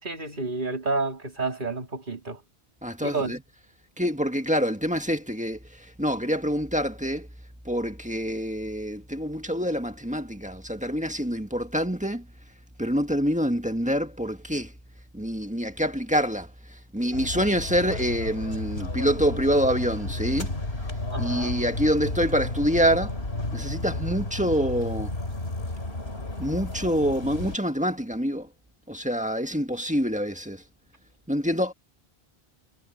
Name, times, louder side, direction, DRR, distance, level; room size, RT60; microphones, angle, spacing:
voice 1, 0.0-2.4 3.0-3.3 21.1-21.6, right 3 dB, 50° right, 3.6 m, -30 dB
voice 2, 2.8-3.4 4.0-5.6 6.0-7.3 7.6-12.2 12.8-14.7 15.1-16.5 16.9-20.5 21.2-23.1 23.5-25.1 26.4-28.5 28.9-30.6 31.3-31.7, equal, 5° right, 1.7 m, -26 dB
sound 1, 17.1-27.6, left 2 dB, 80° left, 3.5 m, -32 dB
omnidirectional pair, 1.1 m